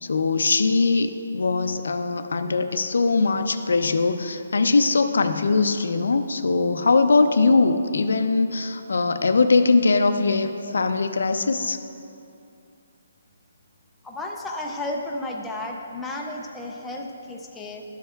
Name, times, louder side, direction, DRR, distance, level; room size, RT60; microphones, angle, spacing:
voice 1, 0.0-11.8, left 3 dB, 75° left, 9 dB, 0.5 m, -21 dB
voice 2, 14.0-17.8, left 2 dB, 5° left, -2 dB, 0.3 m, -33 dB
12.0 x 7.8 x 2.3 m, 2.6 s
hypercardioid pair, 175°, 0 cm